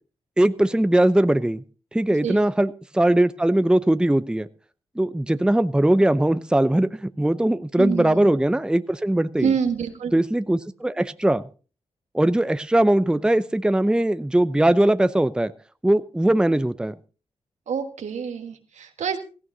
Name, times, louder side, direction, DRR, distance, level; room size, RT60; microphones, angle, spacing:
voice 1, 0.4-1.6 1.9-4.5 5.0-9.5 10.1-11.4 12.1-15.5 15.8-17.0, right 1 dB, 5° right, 13 dB, 0.6 m, -20 dB
voice 2, 7.8-8.3 9.4-10.1 17.7-19.2, right 7 dB, 75° right, 6 dB, 1.6 m, -27 dB
17.0 x 14.5 x 2.7 m, 0.35 s
supercardioid pair, 45°, 12 cm